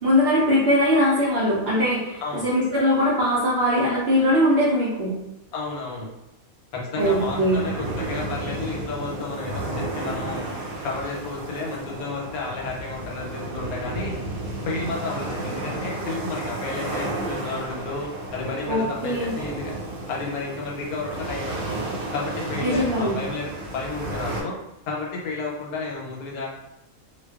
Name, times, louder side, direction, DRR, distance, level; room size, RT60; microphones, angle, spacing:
voice 1, 0.0-5.2 7.0-7.6 18.7-19.3 22.6-23.1, equal, 60° right, -8 dB, 0.7 m, -21 dB
voice 2, 5.5-6.1 6.7-10.5 10.8-14.1 14.6-19.7 20.1-21.8 22.1-24.6 24.9-26.5, left 3 dB, 90° left, -2 dB, 1.1 m, -31 dB
sound 1, 7.0-24.4, right 2 dB, 90° right, 1.1 m, -32 dB
2.4 x 2.2 x 2.3 m, 0.87 s
omnidirectional pair, 1.5 m